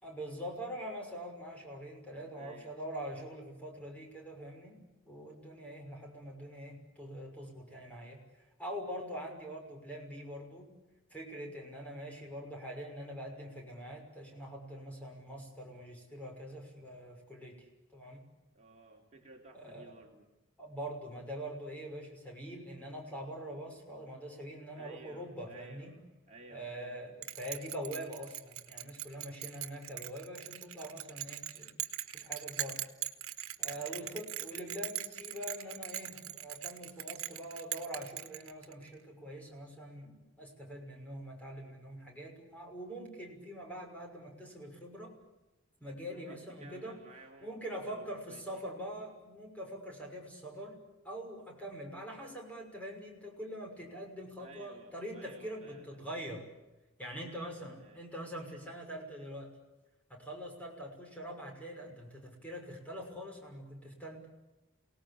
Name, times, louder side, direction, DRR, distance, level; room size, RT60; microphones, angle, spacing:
voice 1, 0.0-4.8 5.0-8.2 8.6-10.7 11.1-18.2 19.5-19.9 20.6-26.0 26.5-31.7 32.1-32.8 33.6-45.2 45.8-47.0 47.4-50.8 51.0-56.4 57.0-59.5 60.1-64.3, equal, 5° left, 1 dB, 6.2 m, -44 dB
voice 2, 2.3-2.8 18.5-20.2 24.7-27.2 33.7-34.1 46.1-47.5 47.8-48.7 54.4-56.0 57.3-58.0, right 2 dB, 35° right, -1 dB, 3.1 m, -55 dB
Bell, 27.2-38.9, right 12 dB, 85° right, 1.7 m, -41 dB
28.5 x 18.5 x 8.7 m, 1.0 s
head